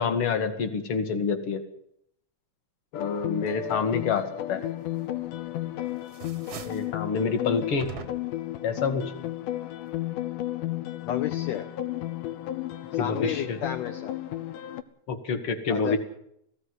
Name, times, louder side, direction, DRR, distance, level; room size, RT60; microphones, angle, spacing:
voice 1, 0.0-1.6 2.9-4.6 6.6-7.9 8.6-9.0 13.0-13.6 15.1-16.0, left 5 dB, 45° left, 9 dB, 2.4 m, -27 dB
sound 1, 2.9-14.8, left 14 dB, 85° left, 2.6 m, -33 dB
sound 2, 5.2-5.7 6.0-7.0 7.8-8.5, right 7 dB, 60° right, 1.0 m, -42 dB
voice 2, 11.1-11.7 12.9-14.1 15.7-16.0, left 9 dB, 65° left, 7 dB, 2.1 m, -32 dB
18.0 x 15.5 x 9.6 m, 0.73 s
omnidirectional pair, 3.6 m